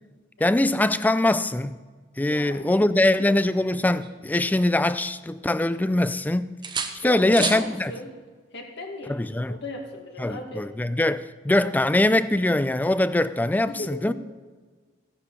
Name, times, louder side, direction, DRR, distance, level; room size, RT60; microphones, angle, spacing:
voice 1, 0.4-1.7 2.2-6.6 6.9-7.9 9.1-9.6 10.2-14.1, left 1 dB, 10° left, 0.3 m, -22 dB
voice 2, 2.3-3.4 7.0-8.1 8.5-10.6 13.7-14.1, left 1 dB, 65° left, 2.1 m, -37 dB
sound 1, 3.5-5.0 5.4-6.2 6.6-7.7 9.6-9.8, right 5 dB, 25° right, 0.8 m, -34 dB
15.5 x 11.0 x 4.1 m
head